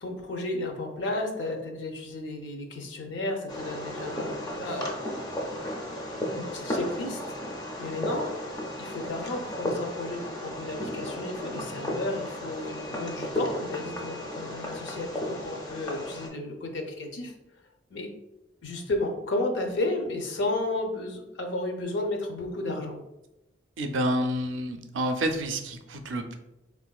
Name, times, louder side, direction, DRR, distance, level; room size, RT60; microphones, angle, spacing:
voice 1, 0.0-4.9 6.1-7.2 7.8-8.3 8.8-17.3 17.9-18.1 18.6-23.0, left 2 dB, 65° left, 3 dB, 0.5 m, -33 dB
Fireworks, 3.5-16.3, left 1 dB, 20° left, 0.4 m, -34 dB
voice 2, 23.8-26.3, right 1 dB, 70° right, 6 dB, 0.4 m, -29 dB
3.6 x 2.5 x 2.3 m, 0.93 s
head